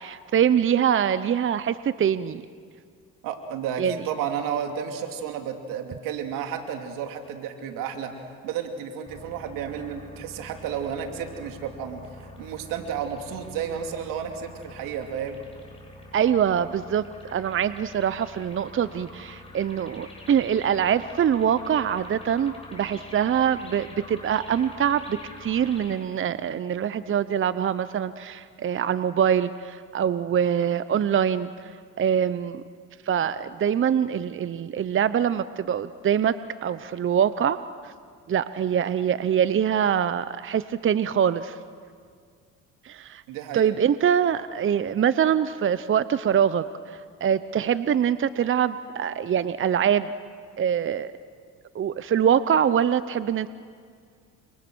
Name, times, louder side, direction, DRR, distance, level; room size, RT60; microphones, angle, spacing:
voice 1, 0.0-2.4 3.8-4.0 16.1-32.6 33.0-37.9 38.3-41.6 42.8-43.2 43.5-50.1 50.6-51.1 51.7-53.5, right 8 dB, 40° right, 14 dB, 0.8 m, -24 dB
voice 2, 3.2-8.2 8.4-15.4 43.3-43.7, right 8 dB, 80° right, 5 dB, 2.8 m, -32 dB
sound 1, 9.1-26.0, left 1 dB, 20° left, 7.8 m, -45 dB
30.0 x 26.5 x 6.3 m, 2.1 s
supercardioid pair, 75°, 33 cm